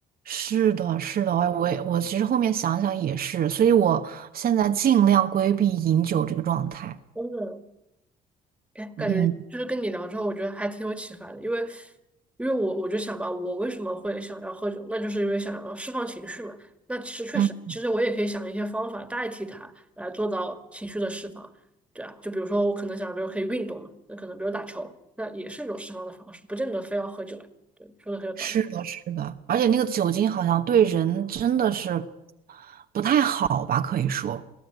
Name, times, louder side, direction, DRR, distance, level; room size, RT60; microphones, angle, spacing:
voice 1, 0.3-7.0 9.0-9.3 17.3-17.7 28.4-32.1 32.5-34.4, right 9 dB, 60° right, 1.2 m, -23 dB
voice 2, 7.2-7.6 8.8-11.9 12.4-21.5 22.0-27.5 27.8-28.6, right 1 dB, 5° right, 2.0 m, -31 dB
23.0 x 15.5 x 9.4 m
cardioid pair, 90°, 17 cm